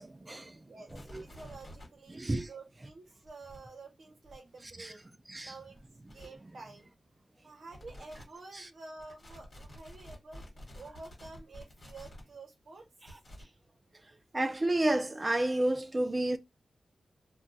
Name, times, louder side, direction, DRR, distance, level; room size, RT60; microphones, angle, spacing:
voice 1, 0.0-0.6 0.9-1.2 2.1-2.5 4.8-4.9 5.3-5.5 8.5-8.7 14.3-16.4, right 1 dB, 20° right, 0.3 m, -31 dB
sound 1, 0.9-1.9 3.3-3.6 4.3-4.4 5.8-5.9 6.1-6.3 7.7-8.2 9.0-12.2 13.1-13.4, equal, 40° left, 1.4 m, -50 dB
voice 2, 1.2-5.1 5.4-6.9 7.4-12.9, right 3 dB, 55° right, 0.8 m, -50 dB
2.3 x 2.2 x 3.9 m
wide cardioid pair, 165°, 0 cm